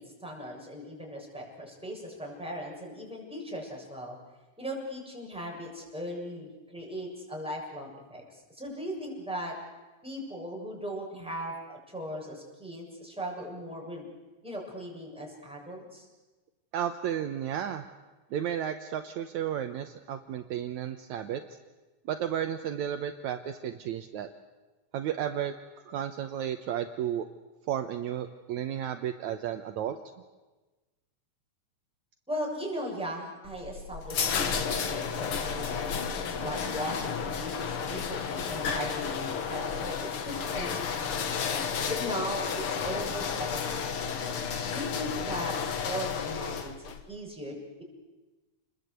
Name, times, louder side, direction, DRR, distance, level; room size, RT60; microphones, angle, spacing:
voice 1, 0.0-4.2 4.6-9.6 10.0-14.1 14.4-16.1 32.3-41.4 41.9-45.6 45.8-47.8, equal, ahead, -2 dB, 7.1 m, -38 dB
voice 2, 16.7-17.8 18.3-21.4 22.1-24.3 24.9-25.5 25.9-27.3 27.7-30.0, right 10 dB, 70° right, 7 dB, 2.2 m, -33 dB
sound 1, 33.4-47.0, left 6 dB, 50° left, 2.1 m, -32 dB
29.0 x 21.0 x 8.2 m, 1.2 s
omnidirectional pair, 3.6 m